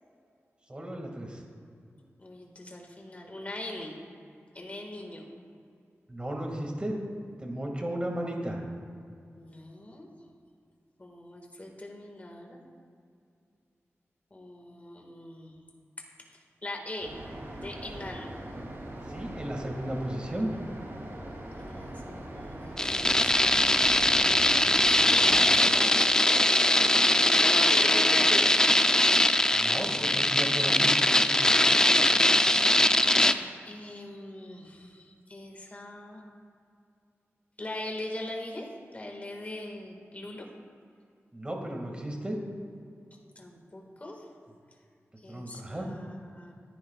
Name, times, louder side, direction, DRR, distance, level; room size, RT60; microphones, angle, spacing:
voice 1, 0.7-1.4 6.1-7.0 7.4-8.6 19.1-20.5 29.5-30.9 31.2-31.6 41.3-42.4 45.3-45.9, right 1 dB, 20° right, 0 dB, 2.1 m, -34 dB
voice 2, 2.2-3.9 4.5-5.3 9.4-10.1 11.0-12.6 14.3-15.5 16.3-17.1 17.5-18.3 21.5-23.8 25.1-26.0 26.4-26.8 27.3-28.5 31.4-31.5 33.2-36.2 37.6-40.5 43.3-44.3 45.2-46.5, left 1 dB, 30° left, 0 dB, 1.8 m, -42 dB
sound 1, 17.0-25.6, right 1 dB, 65° right, 2.7 m, -41 dB
sound 2, 22.8-33.3, left 1 dB, 15° left, 0.4 m, -22 dB
25.0 x 10.0 x 2.4 m, 2.4 s
wide cardioid pair, 120°, 5 cm